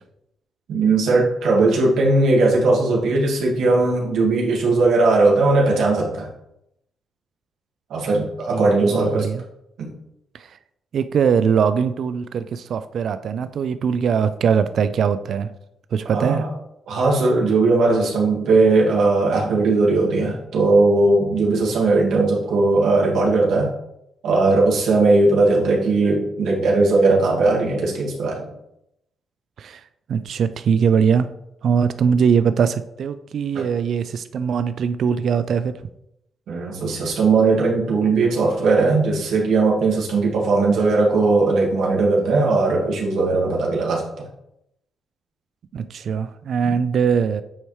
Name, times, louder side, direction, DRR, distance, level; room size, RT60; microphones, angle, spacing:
voice 1, 0.7-6.3 7.9-9.3 9.8-9.9 16.1-16.5 16.9-23.7 24.2-28.4 33.5-33.6 36.5-44.1, right 3 dB, 75° right, -3 dB, 2.0 m, -18 dB
voice 2, 8.5-9.4 10.3-10.6 10.9-15.5 15.9-16.5 29.6-29.8 30.1-31.3 31.6-35.7 45.7-47.4, right 7 dB, 60° right, 12 dB, 0.3 m, -21 dB
8.6 x 4.4 x 3.2 m, 0.81 s
cardioid pair, 120°, 0 cm